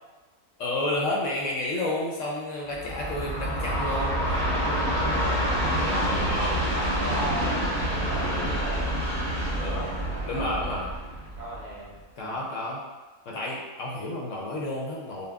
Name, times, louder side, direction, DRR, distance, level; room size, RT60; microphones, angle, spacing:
voice 1, 0.6-4.4 5.7-6.6 9.5-10.0 10.3-10.9 12.2-12.8 13.3-15.3, left 1 dB, 65° left, -3 dB, 0.9 m, -31 dB
Train, 2.7-11.9, equal, 65° right, 1.6 m, -27 dB
voice 2, 5.6-6.0 6.7-8.8 9.6-10.6 11.4-12.4, right 1 dB, 40° right, -7 dB, 0.7 m, -37 dB
5.4 x 2.3 x 2.2 m, 1.2 s
omnidirectional pair, 1.5 m